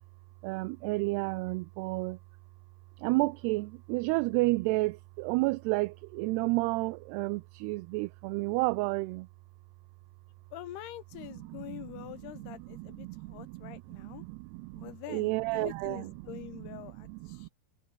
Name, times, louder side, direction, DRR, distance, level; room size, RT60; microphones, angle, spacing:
voice 1, 0.4-2.2 3.0-9.3 12.8-16.0 17.1-17.5, right 23 dB, 85° right, 2.6 m, -31 dB
voice 2, 10.5-14.3 14.8-17.5, left 13 dB, 75° left, 3.6 m, -45 dB
omnidirectional pair, 4.7 m